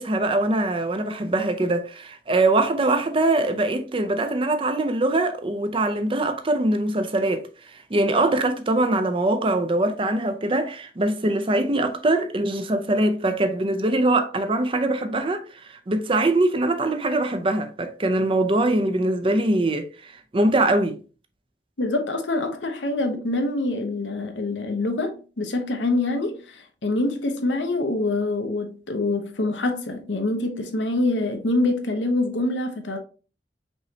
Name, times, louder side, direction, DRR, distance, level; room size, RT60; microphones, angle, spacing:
voice 1, 0.0-15.4 15.7-21.0, right 2 dB, 30° right, 0.5 m, -23 dB
voice 2, 21.8-33.0, left 2 dB, 90° left, 0.9 m, -25 dB
5.4 x 3.1 x 2.8 m
head